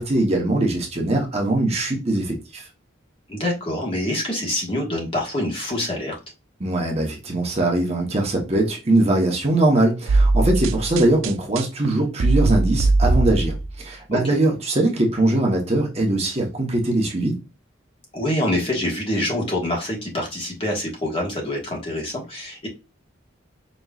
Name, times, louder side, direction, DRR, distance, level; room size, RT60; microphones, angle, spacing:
voice 1, 0.0-2.7 6.6-17.4, right 2 dB, 30° right, 1.0 m, -21 dB
voice 2, 3.3-6.2 10.4-10.5 14.1-14.2 18.1-22.7, left 1 dB, 25° left, 1.3 m, -25 dB
sound 1, 10.1-13.8, right 2 dB, 85° right, 0.4 m, -20 dB
5.2 x 3.0 x 2.4 m
head